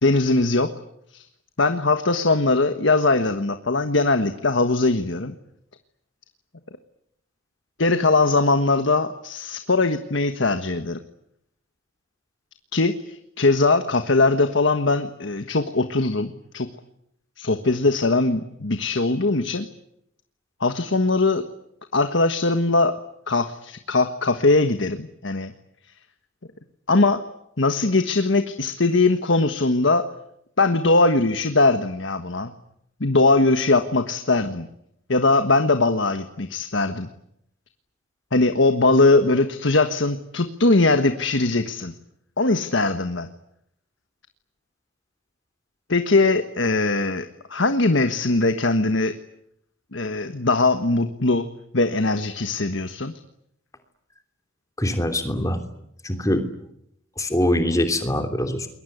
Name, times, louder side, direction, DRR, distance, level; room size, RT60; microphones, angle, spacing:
voice 1, 0.0-0.7 1.1-1.2 1.6-5.3 7.8-11.0 12.7-16.7 17.4-19.7 20.6-21.4 21.9-22.9 23.3-25.5 26.9-27.2 27.6-30.0 30.6-32.5 33.0-34.7 35.1-37.1 38.3-41.9 42.4-43.3 45.9-49.1 49.9-51.4 51.7-53.1, left 3 dB, 70° left, 8 dB, 1.5 m, -20 dB
voice 2, 54.8-55.6 56.0-56.5 57.2-58.7, left 1 dB, 15° left, 6 dB, 3.1 m, -23 dB
27.5 x 22.0 x 9.4 m, 0.77 s
head